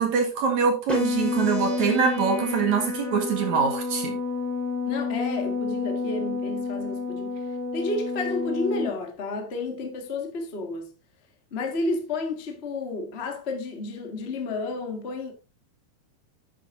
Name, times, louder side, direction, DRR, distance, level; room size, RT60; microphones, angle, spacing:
voice 1, 0.0-4.2, right 6 dB, 55° right, 2.6 m, -24 dB
sound 1, 0.9-8.9, left 4 dB, ahead, 4.5 m, -29 dB
voice 2, 4.8-10.9 11.5-15.3, left 2 dB, 70° left, 0.6 m, -31 dB
10.5 x 9.2 x 2.7 m
omnidirectional pair, 4.7 m